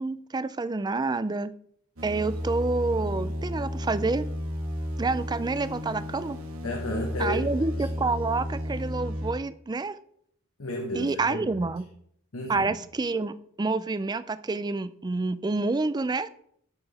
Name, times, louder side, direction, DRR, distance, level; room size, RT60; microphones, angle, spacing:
voice 1, 0.0-1.5 2.0-4.3 5.0-6.4 7.2-10.0 10.9-11.9 12.5-16.3, right 3 dB, 20° right, 14 dB, 0.4 m, -28 dB
sound 1, 2.0-9.3, equal, 80° right, 2.1 m, -33 dB
voice 2, 6.6-7.9 10.6-11.6 12.3-12.7, left 1 dB, 75° left, 1 dB, 1.2 m, -33 dB
8.7 x 6.9 x 4.2 m, 0.68 s
head